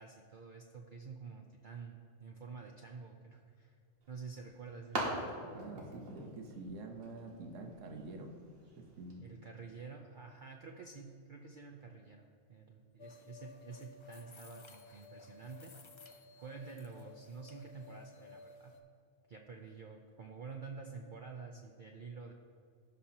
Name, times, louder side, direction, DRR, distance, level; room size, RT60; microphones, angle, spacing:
voice 1, 0.0-3.8 4.1-5.1 9.2-15.7 16.4-18.7 19.3-22.3, right 5 dB, 50° right, 2 dB, 0.6 m, -49 dB
sound 1, 4.0-9.1, right 1 dB, 85° right, 2.1 m, -44 dB
voice 2, 5.5-8.3 8.8-9.3, right 3 dB, 70° right, 3 dB, 1.3 m, -47 dB
sound 2, 13.0-18.8, left 4 dB, 40° left, 0.4 m, -55 dB
16.5 x 5.9 x 2.8 m, 2.2 s
omnidirectional pair, 1.4 m